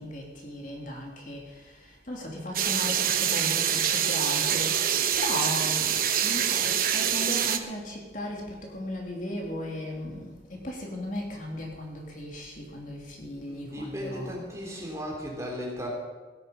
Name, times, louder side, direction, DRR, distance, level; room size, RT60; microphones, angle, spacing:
voice 1, 0.0-1.7 2.1-4.9 5.1-5.9 6.2-14.4 14.6-14.8, left 1 dB, 45° left, -1 dB, 2.8 m, -36 dB
sound 1, 2.5-7.6, right 9 dB, 50° right, 0.9 m, -25 dB
voice 2, 13.5-15.9, equal, 15° right, -3 dB, 3.5 m, -36 dB
17.0 x 10.5 x 5.8 m, 1.3 s
head